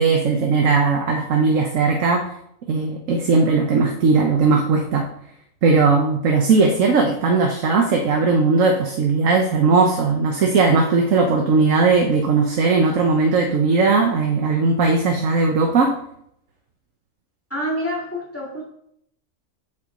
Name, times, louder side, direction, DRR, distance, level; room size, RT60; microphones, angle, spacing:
voice 1, 0.0-2.3 2.7-5.1 5.6-15.9, right 4 dB, 70° right, 2 dB, 1.3 m, -18 dB
voice 2, 17.5-18.6, equal, 10° left, -4 dB, 1.9 m, -27 dB
8.3 x 6.1 x 3.8 m, 0.71 s
omnidirectional pair, 1.4 m